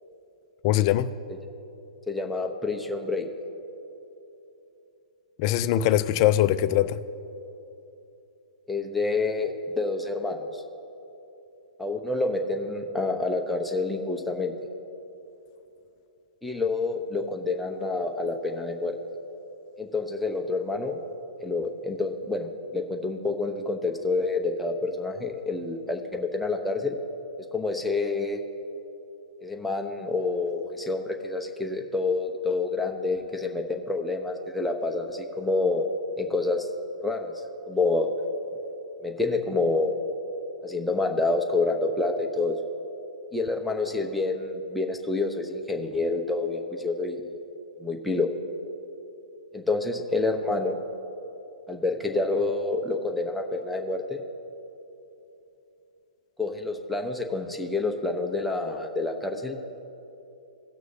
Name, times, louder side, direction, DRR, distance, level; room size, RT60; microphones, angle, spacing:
voice 1, 0.6-1.1 5.4-7.0, left 12 dB, 40° left, 13 dB, 0.5 m, -22 dB
voice 2, 2.1-3.3 8.7-10.6 11.8-14.5 16.4-18.9 19.8-21.0 21.4-27.0 27.5-28.4 29.4-35.9 36.2-36.7 37.0-37.3 37.7-38.1 39.0-40.0 40.6-42.6 43.3-47.3 47.8-48.3 49.5-50.8 51.7-54.2 56.4-59.6, left 3 dB, ahead, 1 dB, 1.0 m, -28 dB
18.0 x 6.2 x 2.8 m, 2.9 s
figure-of-eight pair, 120°, 4 cm